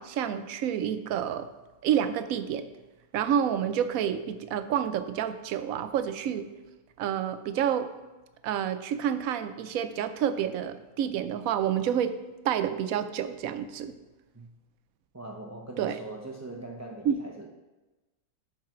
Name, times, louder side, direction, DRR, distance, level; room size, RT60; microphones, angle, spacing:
voice 1, 0.0-1.5 1.8-2.7 3.1-6.5 7.0-7.9 8.4-12.2 12.4-13.9 15.8-16.0 17.0-17.2, right 9 dB, 75° right, 11 dB, 1.0 m, -29 dB
voice 2, 15.1-17.5, right 2 dB, 25° right, 1 dB, 0.3 m, -41 dB
7.5 x 4.8 x 6.0 m, 1.1 s
omnidirectional pair, 1.5 m